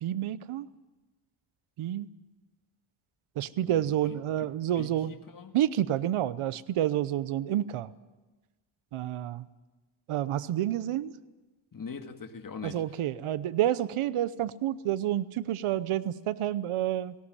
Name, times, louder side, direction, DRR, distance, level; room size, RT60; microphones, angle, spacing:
voice 1, 0.0-0.7 1.8-2.1 3.4-5.1 5.5-7.9 8.9-9.5 10.1-11.1 12.6-17.2, right 12 dB, 85° right, 16 dB, 0.9 m, -29 dB
voice 2, 3.6-5.6 11.7-12.8, left 5 dB, 40° left, 7 dB, 2.1 m, -43 dB
18.5 x 17.5 x 10.0 m, 1.2 s
cardioid pair, 105°, 49 cm